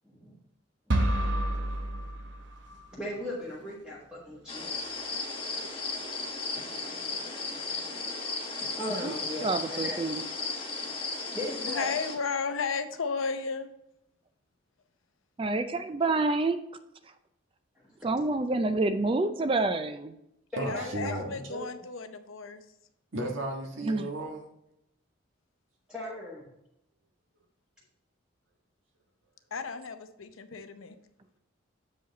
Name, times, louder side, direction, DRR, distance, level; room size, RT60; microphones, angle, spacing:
sound 1, 0.9-2.9, right 1 dB, 60° right, 0.9 m, -29 dB
voice 1, 2.9-4.7 6.5-6.7 7.7-7.8 8.8-10.0 11.3-11.9 20.5-21.6 25.9-26.5, left 1 dB, 5° right, -6 dB, 1.4 m, -38 dB
sound 2, 4.5-12.1, left 3 dB, 25° left, 1.0 m, -35 dB
voice 2, 9.4-10.2 15.4-16.6 18.0-20.1 23.8-24.1, right 3 dB, 25° right, 10 dB, 0.4 m, -28 dB
voice 3, 11.7-13.7 20.6-22.6 29.5-31.0, left 5 dB, 90° left, 9 dB, 0.7 m, -34 dB
voice 4, 20.6-21.4 23.1-24.4, right 1 dB, 80° right, 1 dB, 1.5 m, -34 dB
7.5 x 5.0 x 3.9 m, 0.81 s
head